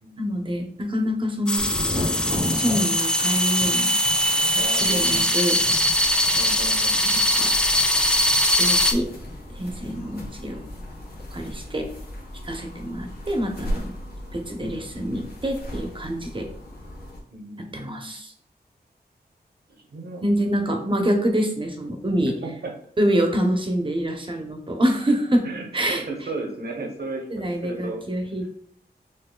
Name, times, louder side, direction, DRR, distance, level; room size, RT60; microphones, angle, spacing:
voice 1, 0.2-1.7 2.5-4.0 4.5-5.6 7.0-7.5 8.6-9.1 9.5-10.6 11.3-11.9 12.4-13.9 14.3-16.5 17.7-18.3 20.2-22.3 23.0-25.5 25.7-26.0 27.3-28.5, equal, 30° right, 3 dB, 0.8 m, -26 dB
sound 1, 1.5-8.9, equal, 5° left, 0.4 m, -21 dB
Thunder, 1.6-11.2 11.5-12.2, left 1 dB, 25° left, 1.1 m, -35 dB
voice 2, 4.6-5.3 6.3-7.0 17.3-18.1 19.9-20.3 20.7-20.8 22.4-22.7 25.4-28.0, right 2 dB, 70° right, 2 dB, 0.9 m, -35 dB
sound 2, 5.7-17.2, equal, 65° left, 1.1 m, -38 dB
6.2 x 2.5 x 2.3 m, 0.63 s
wide cardioid pair, 100°, 17 cm